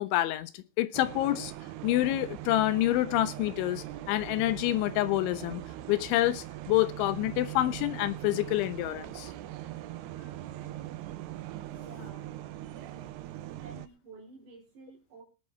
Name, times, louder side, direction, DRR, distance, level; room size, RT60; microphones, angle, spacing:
voice 1, 0.0-1.5 1.8-5.6 5.9-9.3 10.6-10.8, left 15 dB, 75° left, 3.1 m, -28 dB
sound 1, 0.9-13.9, right 14 dB, 80° right, 2.4 m, -41 dB
voice 2, 11.7-12.3 13.6-15.2, right 2 dB, 40° right, 5.0 m, -51 dB
18.5 x 9.5 x 4.5 m
omnidirectional pair, 5.8 m